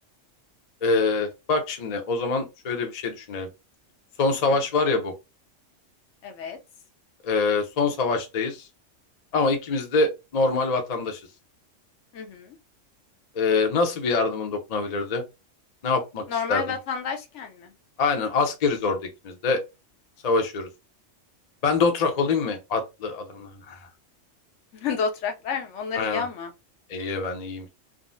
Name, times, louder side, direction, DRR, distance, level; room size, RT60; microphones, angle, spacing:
voice 1, 0.8-3.5 4.2-5.1 7.2-8.7 9.3-11.2 13.3-15.2 15.8-16.8 18.0-19.0 19.2-19.6 20.2-20.7 21.6-23.8 25.9-26.3 26.9-27.7, left 4 dB, 45° left, 0.6 m, -25 dB
voice 2, 6.2-6.6 12.1-12.6 16.3-17.7 24.7-26.5, left 6 dB, 70° left, 0.9 m, -30 dB
3.6 x 2.0 x 2.5 m
omnidirectional pair, 1.3 m